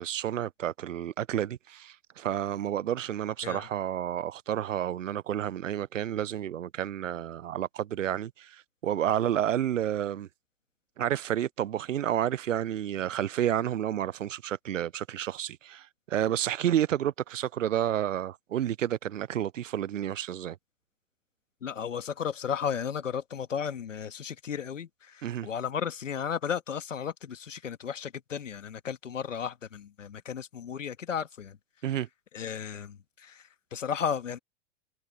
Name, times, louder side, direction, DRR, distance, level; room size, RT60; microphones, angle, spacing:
voice 1, 0.0-10.3 11.0-20.6 25.2-25.5 31.8-32.1, right 11 dB, 85° right, 0.6 m, -30 dB
voice 2, 21.6-31.6 32.3-34.4, left 7 dB, 85° left, 1.9 m, -34 dB
hypercardioid pair, 95°, 37 cm